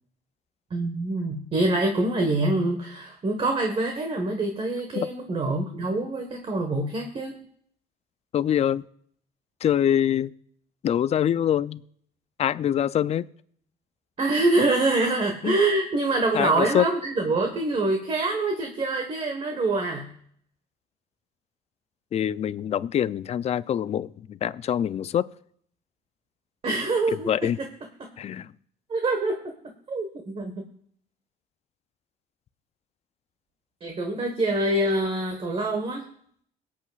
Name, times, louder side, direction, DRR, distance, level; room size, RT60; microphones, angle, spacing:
voice 1, 0.7-7.3 14.2-20.1 26.6-27.5 28.0-28.1 28.9-29.3 29.9-30.6 33.8-36.0, right 2 dB, 35° right, 1.4 m, -25 dB
voice 2, 8.3-8.8 9.6-10.3 10.8-11.8 12.4-13.3 15.4-15.6 16.3-16.9 22.1-25.3 27.3-27.6 28.2-28.5, left 10 dB, 40° left, 0.4 m, -24 dB
22.5 x 8.4 x 2.4 m
cardioid pair, 110°, 17 cm